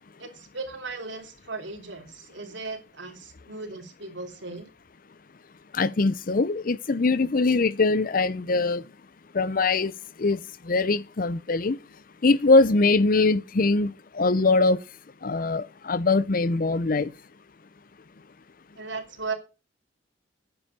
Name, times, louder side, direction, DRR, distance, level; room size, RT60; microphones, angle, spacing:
voice 1, 0.2-4.7 18.8-19.3, right 3 dB, 80° right, 3.0 m, -37 dB
voice 2, 5.7-8.8 9.3-9.9 10.2-10.4 10.7-11.8 12.2-14.8 15.2-17.1, left 3 dB, 50° left, 0.6 m, -22 dB
9.9 x 7.6 x 6.7 m
head